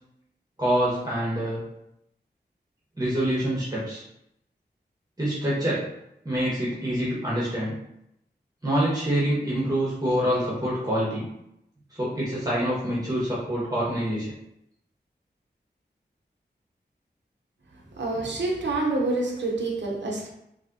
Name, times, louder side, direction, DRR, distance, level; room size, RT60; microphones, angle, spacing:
voice 1, 0.6-1.6 3.0-4.0 5.2-5.9 6.2-7.7 8.6-11.3 11.9-14.3, right 1 dB, 20° right, -7 dB, 1.3 m, -26 dB
voice 2, 18.0-20.3, right 2 dB, 85° right, 0 dB, 0.8 m, -27 dB
4.0 x 2.9 x 2.6 m, 0.79 s
cardioid pair, 40°, 18 cm